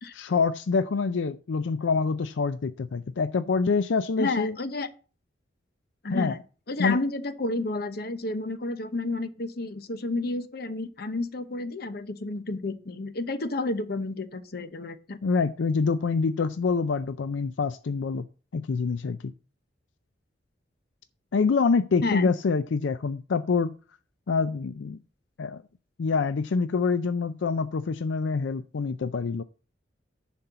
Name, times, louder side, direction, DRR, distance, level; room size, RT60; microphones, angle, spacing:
voice 1, 0.1-4.5 6.1-6.4 6.8-7.0 15.2-18.2 18.5-19.3 21.3-23.7 24.3-25.0 25.4-25.6 26.0-29.4, left 4 dB, 85° left, 0.4 m, -26 dB
voice 2, 4.2-4.9 6.0-6.4 6.7-15.2 22.0-22.3, left 2 dB, 60° left, 0.9 m, -31 dB
10.5 x 4.4 x 6.7 m
head